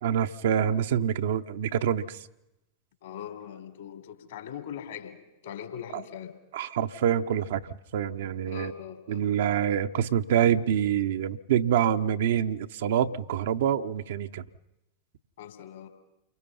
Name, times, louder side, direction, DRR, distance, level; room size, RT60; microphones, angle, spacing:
voice 1, 0.0-2.2 6.5-7.6 7.9-8.7 9.1-14.4, right 9 dB, 60° right, 7 dB, 0.9 m, -26 dB
voice 2, 3.0-5.2 5.4-6.4 8.4-9.2 15.4-15.9, left 9 dB, 60° left, 6 dB, 3.6 m, -41 dB
29.0 x 24.0 x 5.6 m, 0.91 s
figure-of-eight pair, 90°, 0 cm